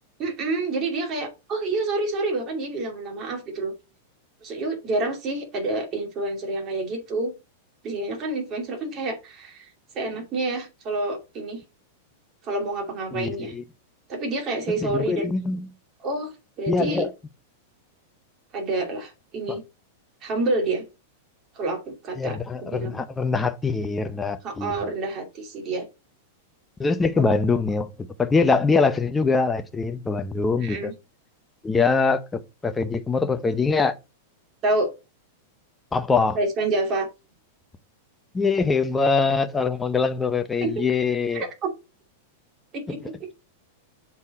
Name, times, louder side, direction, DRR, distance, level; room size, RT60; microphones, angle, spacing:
voice 1, 0.2-3.7 4.4-7.3 7.8-9.7 9.9-11.6 12.4-13.6 14.1-15.3 16.0-17.1 18.5-19.6 20.2-20.8 21.6-23.0 24.4-25.9 27.2-27.4 30.6-30.9 34.6-34.9 36.3-37.1 40.6-40.7 41.3-41.7 42.7-43.1, right 2 dB, 35° right, 2.6 m, -28 dB
voice 2, 13.1-13.6 14.8-15.6 16.7-17.1 19.5-19.6 22.2-24.8 26.8-27.9 28.2-30.9 31.6-34.0 35.9-36.4 38.3-41.4, left 4 dB, 10° left, 0.7 m, -23 dB
7.2 x 4.3 x 4.2 m
hypercardioid pair, 135°, 0 cm